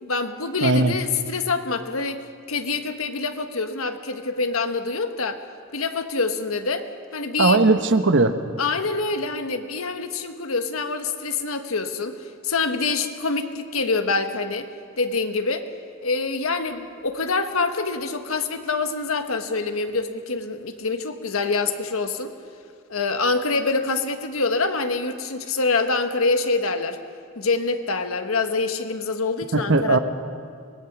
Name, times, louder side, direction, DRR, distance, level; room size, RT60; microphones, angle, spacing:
voice 1, 0.0-5.4 5.7-6.9 7.1-7.6 8.6-14.7 15.0-15.7 16.0-22.3 22.9-27.0 27.3-30.0, left 3 dB, 80° left, 7 dB, 1.5 m, -25 dB
voice 2, 0.6-1.0 7.4-8.3 29.5-30.0, right 3 dB, 60° right, 9 dB, 1.1 m, -18 dB
25.0 x 20.0 x 6.1 m, 2.3 s
head